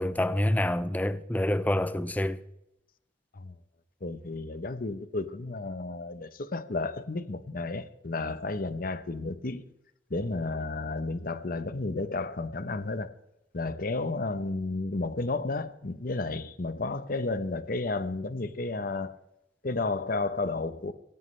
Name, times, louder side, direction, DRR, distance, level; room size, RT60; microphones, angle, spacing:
voice 1, 0.0-2.4, left 1 dB, 10° left, 0.5 m, -27 dB
voice 2, 4.0-9.6 10.1-13.1 13.5-19.2 19.6-20.9, left 3 dB, 55° left, 0.9 m, -32 dB
17.5 x 15.0 x 3.3 m
head